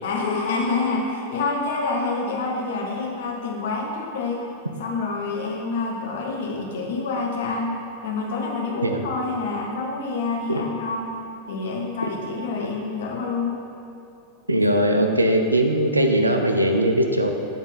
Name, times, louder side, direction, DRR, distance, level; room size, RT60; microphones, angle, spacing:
voice 1, 0.0-4.5 4.8-11.1 11.5-13.6, left 3 dB, 60° left, -1 dB, 0.9 m, -27 dB
voice 2, 14.5-17.3, right 1 dB, 85° right, 4 dB, 0.4 m, -20 dB
7.9 x 3.6 x 4.0 m, 2.7 s
figure-of-eight pair, 90°, 0 cm